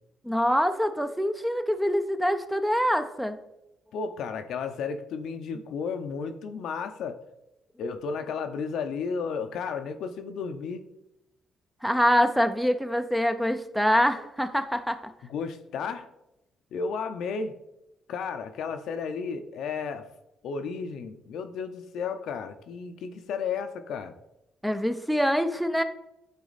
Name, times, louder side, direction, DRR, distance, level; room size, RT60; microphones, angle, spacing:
voice 1, 0.2-3.4 11.8-15.0 24.6-25.8, equal, ahead, 9 dB, 0.6 m, -25 dB
voice 2, 3.9-7.2 7.8-10.8 15.3-16.1 16.7-17.5 18.1-20.1 20.4-24.1, left 5 dB, 75° left, 8 dB, 0.6 m, -33 dB
10.5 x 4.1 x 4.1 m, 0.90 s
cardioid pair, 90°, 0 cm